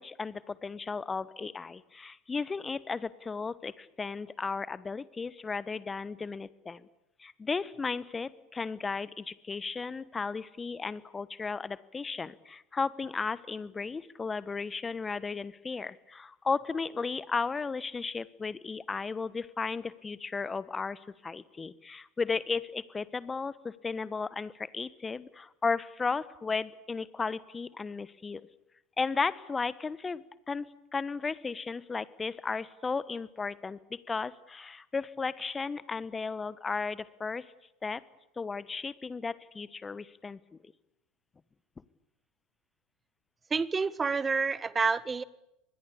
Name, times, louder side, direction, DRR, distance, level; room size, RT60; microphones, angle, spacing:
voice 1, 0.0-6.9 7.2-28.4 29.0-30.7 30.9-37.5 37.8-38.0 38.4-40.4, left 4 dB, 20° left, 18 dB, 1.3 m, -35 dB
voice 2, 43.5-45.2, right 4 dB, 20° right, 19 dB, 1.3 m, -28 dB
25.5 x 21.0 x 8.7 m, 0.86 s
figure-of-eight pair, 75°, 0 cm